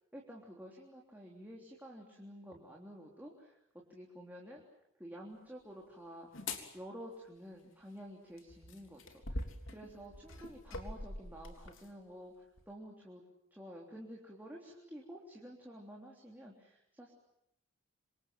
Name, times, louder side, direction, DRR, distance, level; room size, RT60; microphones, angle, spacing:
voice 1, 0.1-3.6 3.9-4.6 5.0-6.3 6.7-13.2 13.5-17.1, equal, 10° right, -2 dB, 3.5 m, -50 dB
sound 1, 6.3-6.7 8.4-11.9 12.6-12.7, left 2 dB, 65° left, 3.4 m, -43 dB
27.5 x 26.0 x 7.7 m, 0.80 s
head